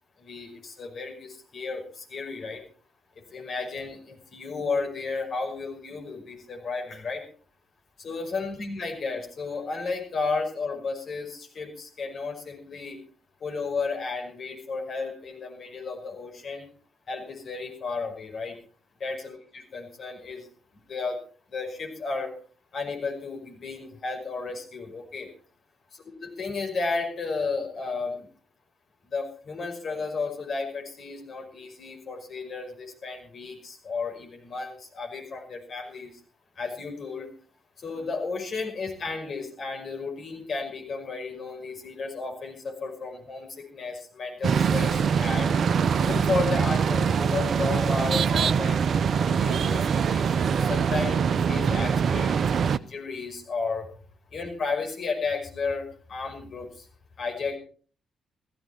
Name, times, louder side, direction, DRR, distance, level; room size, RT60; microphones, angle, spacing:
voice 1, 0.2-2.6 3.3-7.2 8.0-13.0 13.4-16.7 17.1-18.5 19.0-20.5 20.9-21.2 21.5-22.4 22.7-25.3 25.9-28.3 29.1-36.2 36.6-37.3 37.8-45.5 46.0-48.9 49.2-52.4 52.7-53.9 54.3-56.9 57.2-57.6, left 4 dB, 50° left, 2 dB, 5.5 m, -33 dB
sound 1, 44.4-52.8, right 6 dB, 55° right, 0.6 m, -23 dB
15.5 x 15.5 x 4.4 m, 0.41 s
hypercardioid pair, 45°, 0 cm